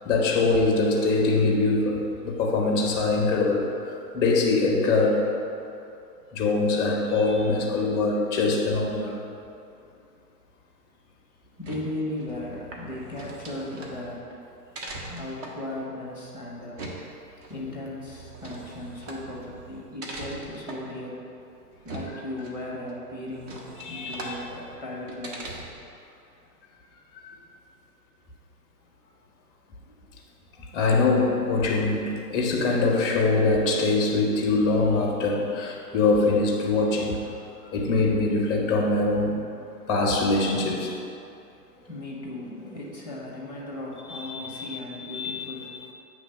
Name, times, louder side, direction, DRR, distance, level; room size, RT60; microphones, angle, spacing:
voice 1, 0.0-5.4 6.3-9.2 17.6-17.7 23.8-24.2 27.2-27.4 30.7-37.2 37.7-39.4 39.9-41.0 44.1-45.7, left 3 dB, 5° left, 0 dB, 0.5 m, -23 dB
sound 1, 11.4-25.9, right 2 dB, 50° right, 1.2 m, -42 dB
voice 2, 11.6-14.4 15.1-16.8 17.5-21.2 21.8-23.6 23.9-25.7 26.3-26.4 29.8-30.0 30.3-30.7 41.7-45.8, left 1 dB, 10° right, -4 dB, 0.9 m, -37 dB
8.3 x 3.2 x 5.5 m, 2.6 s
hypercardioid pair, 125°, 50 cm